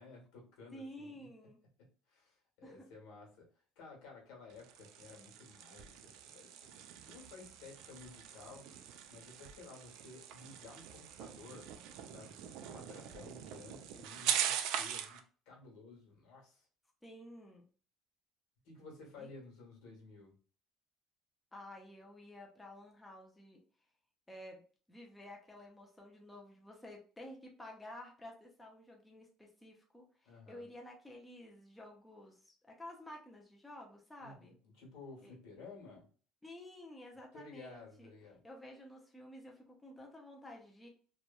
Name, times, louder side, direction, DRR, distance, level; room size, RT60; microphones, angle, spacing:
voice 1, 0.0-1.3 1.8-3.5 3.8-8.7 9.1-11.7 12.1-15.2 15.4-16.7 18.6-20.3 30.2-30.6 34.2-36.1 37.3-38.4, left 3 dB, 80° left, 0 dB, 1.2 m, -54 dB
voice 2, 0.7-1.6 2.6-2.9 17.0-17.7 19.2-19.3 21.5-23.6 24.3-34.5 35.2-35.3 36.4-38.1 38.4-40.9, left 1 dB, 5° left, -1 dB, 0.4 m, -52 dB
sound 1, 4.5-15.2, right 9 dB, 75° right, 0.3 m, -42 dB
2.9 x 2.2 x 2.2 m, 0.41 s
cardioid pair, 150°, 0 cm